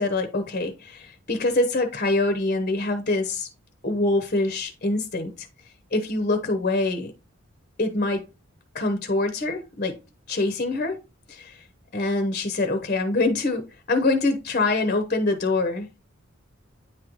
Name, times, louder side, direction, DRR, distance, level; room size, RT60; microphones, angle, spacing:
voice 1, 0.0-3.5 3.8-5.5 5.9-7.1 7.8-8.2 8.7-10.0 10.3-11.0 11.3-11.6 11.9-15.9, left 2 dB, 40° left, 0.8 m, -24 dB
9.1 x 3.8 x 3.0 m
head